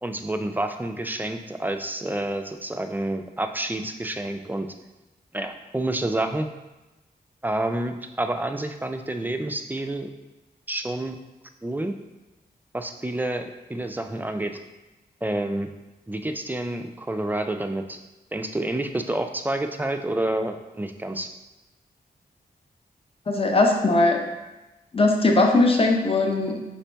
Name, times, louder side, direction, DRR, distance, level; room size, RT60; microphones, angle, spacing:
voice 1, 0.0-4.7 5.3-6.5 7.4-10.1 10.7-11.2 11.6-11.9 12.7-14.6 15.2-15.7 16.1-18.0 18.3-21.3, right 1 dB, 10° right, 6 dB, 0.4 m, -28 dB
voice 2, 23.3-24.2 24.9-26.6, left 2 dB, 35° left, 2 dB, 0.7 m, -19 dB
5.2 x 2.8 x 3.3 m, 1.1 s
cardioid pair, 70°, 17 cm